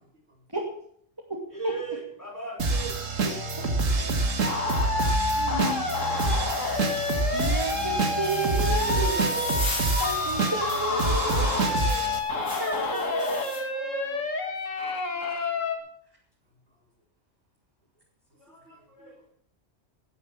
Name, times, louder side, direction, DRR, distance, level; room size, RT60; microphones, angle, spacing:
voice 1, 0.1-0.5 15.1-15.7 16.7-16.8 18.3-19.3, equal, 60° right, 0 dB, 3.0 m, -62 dB
voice 2, 1.5-3.0 8.9-9.7 11.3-12.7 13.0-14.3 18.4-19.3, right 3 dB, 15° left, -2 dB, 5.1 m, -39 dB
sound 1, 2.6-12.2, right 3 dB, 85° right, 2.0 m, -27 dB
voice 3, 3.9-4.4 5.4-5.9 7.3-9.2 10.0-11.6 12.4-13.4, right 2 dB, 20° right, -2 dB, 2.4 m, -32 dB
sound 2, 4.4-15.8, left 3 dB, 85° left, 2.2 m, -29 dB
sound 3, 5.8-13.6, left 1 dB, 65° left, 4.5 m, -39 dB
18.0 x 7.6 x 7.3 m, 0.65 s
omnidirectional pair, 1.3 m